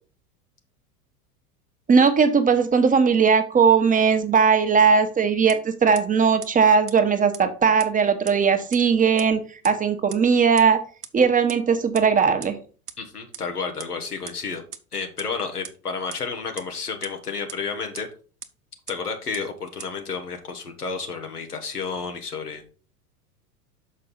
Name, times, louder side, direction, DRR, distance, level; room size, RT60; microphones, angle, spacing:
voice 1, 1.9-10.8 11.1-12.6, right 6 dB, 20° right, 7 dB, 1.0 m, -19 dB
sound 1, 5.5-5.6 5.9-6.0 6.4-6.5 6.9-7.0 7.3-7.4 7.8-7.9 8.3-8.4 8.7-8.8 9.2-9.3 9.6-9.7 10.1-10.2 10.6-10.7 11.0-11.1 11.5-11.6 11.9-12.0 12.4-12.5 12.9-13.0 13.3-13.4 13.8-13.9 14.3-14.4 14.7-14.8 15.2-15.3 15.6-15.7 16.1-16.2 16.6-16.7 17.0-17.1 17.5-17.6 17.9-18.0 18.4-18.5 18.9-19.0 19.3-19.4 19.8-19.9, right 7 dB, 85° right, 0.8 m, -36 dB
voice 2, 13.0-14.6 14.9-18.1 18.9-22.7, left 5 dB, 80° left, 4 dB, 1.7 m, -31 dB
6.5 x 5.2 x 5.5 m, 0.38 s
figure-of-eight pair, 85°, 45 cm